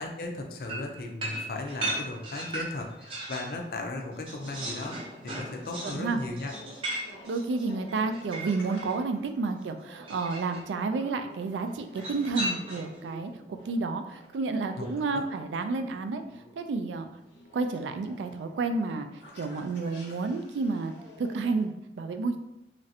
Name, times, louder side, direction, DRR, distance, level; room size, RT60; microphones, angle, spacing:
voice 1, 0.0-5.0 5.2-6.5 14.8-15.2, left 2 dB, 55° left, 3 dB, 0.4 m, -36 dB
sound 1, 0.7-3.6 3.9-9.0 10.0-10.6 11.9-13.0, right 1 dB, 30° right, 0.6 m, -37 dB
voice 2, 5.8-6.2 7.2-16.2 16.6-17.1 17.5-19.1 19.4-20.9 21.2-22.4, right 3 dB, 90° right, 7 dB, 0.3 m, -30 dB
sound 2, 6.2-21.6, left 1 dB, 85° left, 0.7 m, -52 dB
3.1 x 2.5 x 2.7 m, 0.87 s
head